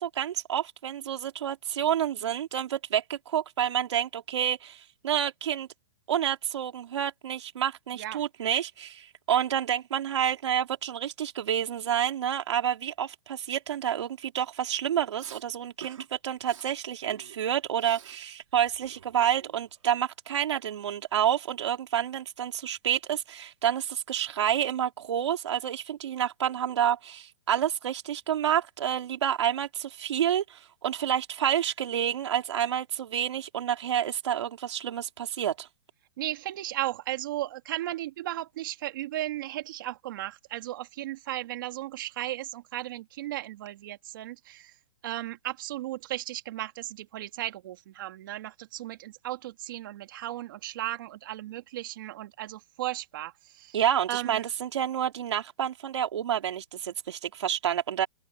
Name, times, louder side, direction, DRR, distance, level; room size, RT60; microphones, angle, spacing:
voice 1, 0.0-5.7 6.1-35.7 53.7-58.1, right 10 dB, 65° right, 4.0 m, -29 dB
Respiratory sounds, 15.2-15.4 15.8-16.1 16.4-16.7 17.1-18.2 18.5-19.9, right 8 dB, 85° right, 4.3 m, -48 dB
voice 2, 36.2-44.7 45.0-53.8 54.1-54.4, right 14 dB, 40° right, 2.6 m, -35 dB
hypercardioid pair, 170°, 16 cm